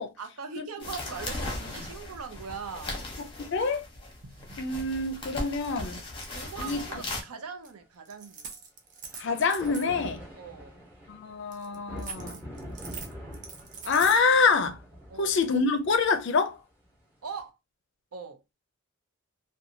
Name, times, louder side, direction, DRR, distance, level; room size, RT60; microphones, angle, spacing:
voice 1, 0.2-3.1 6.3-8.5 10.4-10.8 15.1-15.4 17.2-17.6 18.1-18.4, right 5 dB, 80° right, 0.6 m, -41 dB
Winter Sports Jacket Foley, 0.8-7.2, left 2 dB, 25° left, 0.7 m, -38 dB
sound 1, 1.2-1.6 3.9-5.3 5.6-5.7 6.0-6.9 7.6-7.7 8.0-9.9 11.5-14.2, right 5 dB, 35° right, 0.5 m, -43 dB
voice 2, 3.2-3.8 4.6-6.0 6.6-6.8 9.1-10.2 11.1-12.4 13.8-14.8 15.2-16.6, left 4 dB, 55° left, 0.4 m, -26 dB
sound 2, 5.1-5.2 9.0-17.4, equal, 10° right, 0.9 m, -45 dB
2.8 x 2.2 x 2.6 m
head